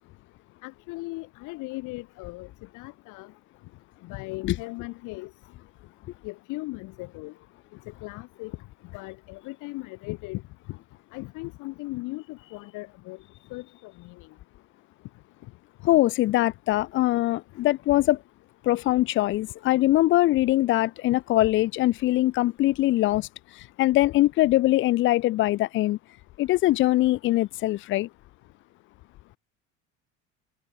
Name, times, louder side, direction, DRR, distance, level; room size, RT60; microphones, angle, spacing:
voice 1, 0.6-2.5 2.7-3.3 4.1-5.3 6.2-7.3 8.0-8.5 8.9-10.4 11.1-13.2 13.5-14.3, left 23 dB, 50° left, 0.8 m, -37 dB
voice 2, 15.9-18.2 18.6-23.3 23.8-26.0 26.4-28.1, left 16 dB, 30° left, 0.4 m, -22 dB
figure-of-eight pair, 65°, 40 cm